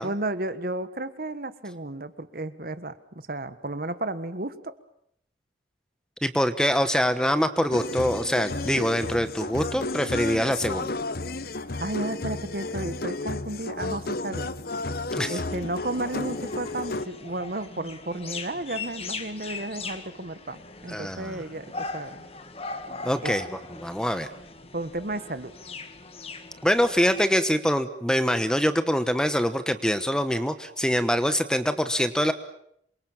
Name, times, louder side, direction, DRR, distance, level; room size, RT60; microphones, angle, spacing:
voice 1, 0.0-4.7 11.8-14.5 15.3-22.3 23.2-23.3 24.7-25.5, right 2 dB, 50° right, 12 dB, 1.4 m, -33 dB
voice 2, 6.2-10.9 15.1-15.4 20.9-21.4 23.0-23.5 23.8-24.3 26.6-32.3, equal, 5° left, 10 dB, 1.1 m, -24 dB
sound 1, 7.7-17.1, left 2 dB, 50° left, 1.0 m, -32 dB
sound 2, 15.5-27.3, left 3 dB, 30° left, 1.8 m, -40 dB
27.5 x 24.0 x 7.3 m, 0.71 s
head